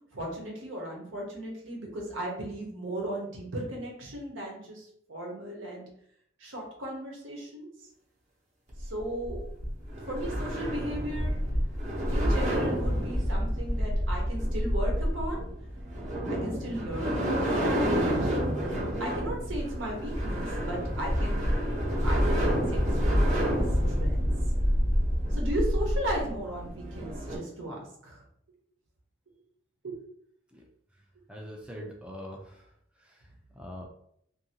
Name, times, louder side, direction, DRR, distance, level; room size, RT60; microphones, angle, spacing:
voice 1, 0.1-5.8 6.4-7.7 8.8-9.4 10.1-11.4 12.1-15.4 16.3-21.5 22.0-24.3 25.3-28.2 29.8-30.0, right 1 dB, 80° right, -1 dB, 0.9 m, -36 dB
sound 1, 8.7-27.4, equal, 40° right, 0.8 m, -28 dB
voice 2, 31.3-32.6 33.0-33.2 33.5-33.8, equal, 5° right, 0 dB, 0.4 m, -42 dB
2.7 x 2.6 x 2.8 m, 0.69 s
head